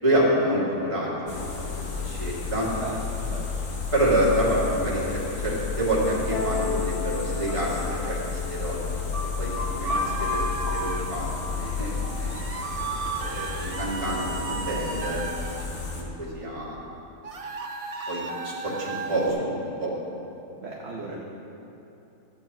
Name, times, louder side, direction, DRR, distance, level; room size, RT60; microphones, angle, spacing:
voice 1, 0.0-2.7 3.9-8.2 8.5-8.8 9.4-10.5 10.7-12.5 13.2-15.2 15.6-16.8 18.1-19.9, right 1 dB, 20° right, -7 dB, 2.4 m, -27 dB
sound 1, 1.3-16.0, left 5 dB, 55° left, 1.4 m, -32 dB
voice 2, 2.8-3.7 4.5-4.9 11.0-11.1 12.3-12.4 19.3-19.5 20.6-21.3, right 3 dB, 50° right, -3 dB, 1.1 m, -39 dB
sound 2, 6.3-13.9, left 2 dB, 85° left, 2.1 m, -34 dB
sound 3, 9.8-11.0 12.3-15.6 17.2-19.3, right 4 dB, 70° right, 0.3 m, -35 dB
13.0 x 8.7 x 4.3 m, 2.9 s
omnidirectional pair, 1.6 m